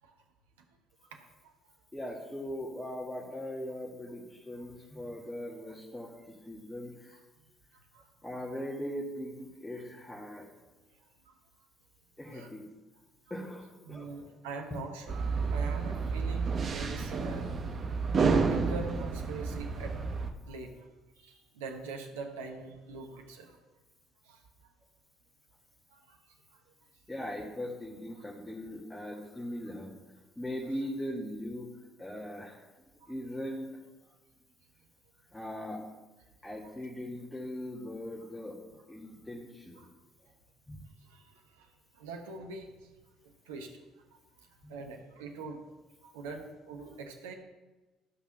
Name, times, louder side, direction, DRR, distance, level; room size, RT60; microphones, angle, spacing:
voice 1, 1.1-1.5 7.9-8.1 11.2-11.4 12.2-12.5 13.9-17.5 17.8-18.0 18.4-19.9 20.2-20.9 21.2-23.6 24.2-24.4 25.9-26.6 29.1-29.2 33.0-33.1 36.5-36.7 39.7-39.9 41.0-42.9 43.4-43.8 44.4-45.6 46.0-47.3, right 4 dB, 75° right, 3 dB, 1.1 m, -44 dB
voice 2, 1.9-7.2 8.2-10.5 12.2-12.7 13.3-14.1 27.1-29.9 30.4-31.7 32.0-32.7 33.1-33.8 35.3-35.9 36.4-38.6 38.9-39.9 40.7-40.8 44.6-44.7, equal, 10° left, -4 dB, 2.1 m, -40 dB
sound 1, 15.1-20.3, right 4 dB, 45° right, 1.1 m, -30 dB
13.0 x 5.7 x 5.9 m, 1.2 s
figure-of-eight pair, 50°, 0 cm